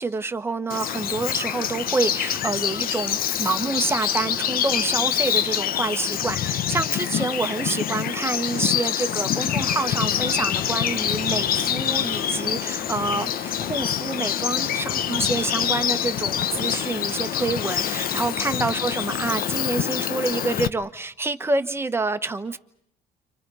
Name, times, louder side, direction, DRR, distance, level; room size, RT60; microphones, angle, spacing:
voice 1, 0.0-22.6, right 3 dB, 15° right, 8 dB, 1.3 m, -27 dB
Bird vocalization bird call bird song, 0.7-20.7, left 9 dB, 60° left, 1.0 m, -26 dB
30.0 x 26.0 x 5.6 m, 0.73 s
cardioid pair, 110°, 17 cm